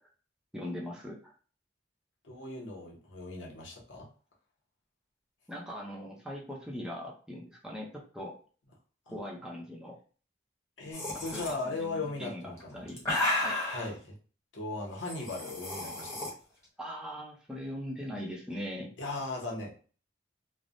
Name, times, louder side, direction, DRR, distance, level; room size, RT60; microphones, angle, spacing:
voice 1, 0.5-1.3 5.5-8.3 9.1-10.0 11.3-13.0 13.4-13.6 16.8-18.9, equal, 5° right, -3 dB, 0.6 m, -40 dB
voice 2, 2.2-4.1 9.1-9.2 10.8-12.8 13.7-14.2 14.5-16.2 19.0-19.8, left 3 dB, 75° left, -1 dB, 0.9 m, -38 dB
sound 1, 10.9-11.5 12.5-13.9 15.0-16.3, left 2 dB, 15° left, 1.1 m, -32 dB
3.2 x 2.1 x 2.5 m, 0.39 s
head